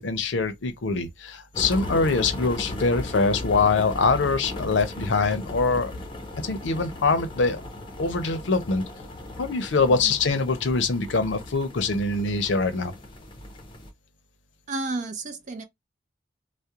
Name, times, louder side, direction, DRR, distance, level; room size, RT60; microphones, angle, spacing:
voice 1, 0.0-5.9 6.4-7.6 8.0-8.9 9.4-12.9, left 4 dB, 75° left, 0.6 m, -24 dB
sound 1, 1.5-13.9, left 1 dB, 25° left, 0.6 m, -37 dB
voice 2, 14.7-15.6, right 3 dB, 40° right, 0.5 m, -32 dB
2.4 x 2.1 x 2.8 m
head